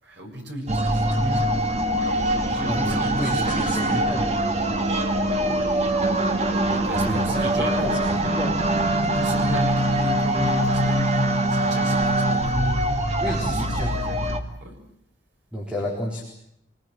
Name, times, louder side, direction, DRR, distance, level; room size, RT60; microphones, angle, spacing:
voice 1, 0.0-1.6 2.3-4.1 5.4-5.6 6.7-7.9 9.0-12.9 13.2-14.3 14.6-14.8, right 1 dB, 65° right, 2 dB, 6.5 m, -35 dB
sound 1, 0.7-14.4, right 1 dB, 35° right, 1.9 m, -23 dB
voice 2, 2.6-4.3 6.6-8.6 13.2-13.9 15.5-16.2, equal, 5° right, -1 dB, 4.2 m, -31 dB
sound 2, 8.1-13.6, left 1 dB, 70° left, 1.8 m, -28 dB
25.0 x 19.5 x 9.0 m, 0.75 s
head